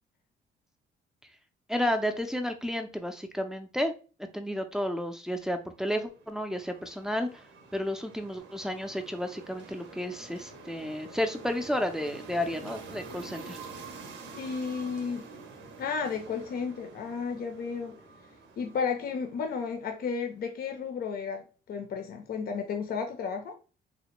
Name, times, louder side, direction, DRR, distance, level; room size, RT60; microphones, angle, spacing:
voice 1, 1.7-3.9 4.3-7.4 7.7-13.6, left 1 dB, 5° right, 5 dB, 0.4 m, -32 dB
sound 1, 5.8-20.1, right 3 dB, 85° right, 0.7 m, -47 dB
voice 2, 14.4-15.3 15.8-18.0 18.6-23.5, left 5 dB, 55° left, 5 dB, 0.5 m, -33 dB
3.3 x 2.1 x 2.9 m, 0.35 s
cardioid pair, 95°, 19 cm